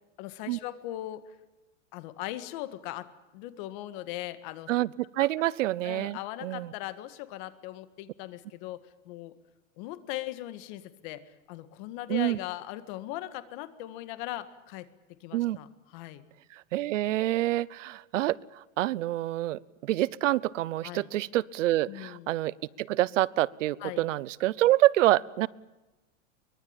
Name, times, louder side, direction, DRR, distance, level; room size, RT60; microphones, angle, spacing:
voice 1, 0.2-1.4 1.9-3.1 3.3-4.7 5.2-5.3 5.8-9.3 9.8-14.9 15.2-16.3 20.8-21.1 21.9-22.3 23.8-24.1, left 15 dB, 40° left, 12 dB, 1.9 m, -39 dB
voice 2, 4.7-6.7 12.1-12.4 15.3-15.6 16.7-25.5, right 15 dB, 80° right, 22 dB, 0.9 m, -27 dB
24.0 x 21.0 x 9.0 m, 1.1 s
supercardioid pair, 170°, 37 cm